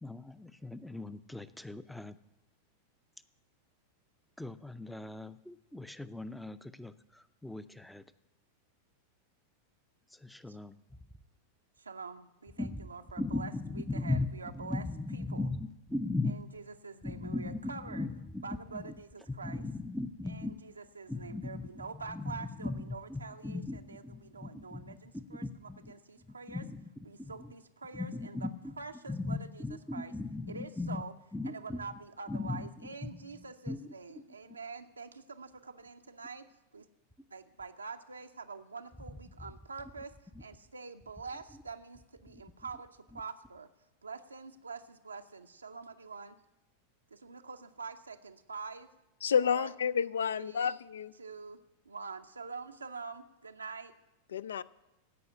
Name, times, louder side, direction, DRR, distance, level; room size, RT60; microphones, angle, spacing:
voice 1, 0.0-2.2 4.4-8.0 10.1-11.1 12.6-12.9 13.2-16.3 17.0-18.9 19.3-20.5 21.1-25.9 26.2-26.9 27.2-27.5 27.9-28.8 29.1-31.0 31.3-31.8 32.3-32.7 33.0-33.8 43.1-43.2, left 2 dB, 5° left, 0.6 m, -38 dB
voice 2, 11.8-15.5 16.2-18.1 18.4-19.7 20.2-26.7 27.0-30.2 30.5-31.2 31.4-36.5 36.7-36.9 37.3-43.7 44.0-46.4 47.1-48.9 49.4-49.7 50.3-50.7 51.1-51.6 51.9-53.9, right 4 dB, 80° right, 0.6 m, -46 dB
voice 3, 49.2-51.1 54.3-54.6, left 7 dB, 65° left, 0.4 m, -30 dB
16.5 x 5.6 x 9.5 m
figure-of-eight pair, 90°, 0 cm